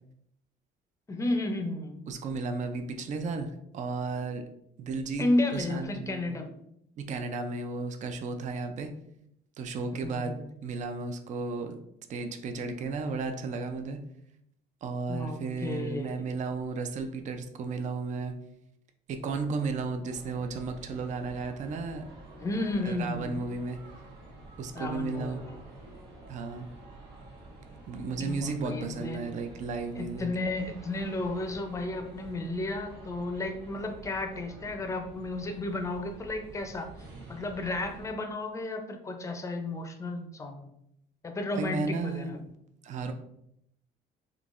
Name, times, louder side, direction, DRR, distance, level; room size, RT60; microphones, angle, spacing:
voice 1, 1.1-2.0 5.2-6.5 10.0-10.5 15.1-16.2 22.4-23.4 24.7-25.5 28.2-29.2 29.9-36.9 37.3-40.7 41.2-42.4, left 2 dB, 20° left, 5 dB, 0.5 m, -33 dB
voice 2, 2.1-4.4 4.8-5.3 5.5-6.3 7.0-8.9 9.6-10.3 10.6-11.8 12.1-14.0 14.8-18.3 19.1-22.1 22.8-23.8 24.6-25.4 26.3-26.7 27.9-30.3 41.5-42.6 42.8-43.1, right 4 dB, 45° right, 6 dB, 0.5 m, -34 dB
sound 1, 20.0-38.1, right 2 dB, 80° right, 1.4 m, -49 dB
3.7 x 2.8 x 2.5 m, 0.74 s
cardioid pair, 110°, 17 cm